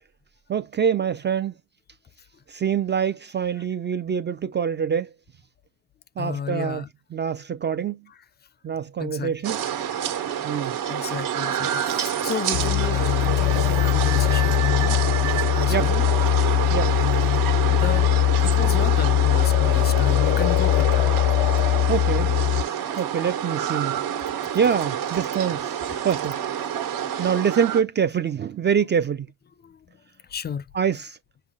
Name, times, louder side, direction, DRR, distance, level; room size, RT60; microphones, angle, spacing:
voice 1, 0.5-1.5 2.5-5.1 6.2-6.8 7.1-8.0 8.6-9.6 10.4-10.8 15.7-15.9 16.7-16.9 21.9-22.3 23.0-24.0 24.5-25.8 26.0-26.4 27.2-29.3 30.7-31.2, right 7 dB, 30° right, 0.5 m, -25 dB
voice 2, 6.2-6.9 9.0-9.3 10.9-16.0 17.0-18.1 18.4-21.2 24.3-24.6 29.6-29.9 30.3-30.7, left 7 dB, 30° left, 0.4 m, -32 dB
sound 1, 9.4-27.8, right 9 dB, 70° right, 1.6 m, -28 dB
sound 2, 11.4-20.0, right 11 dB, 50° right, 0.9 m, -38 dB
sound 3, 12.5-22.6, left 15 dB, 90° left, 0.6 m, -21 dB
5.6 x 2.1 x 3.6 m
cardioid pair, 100°, 36 cm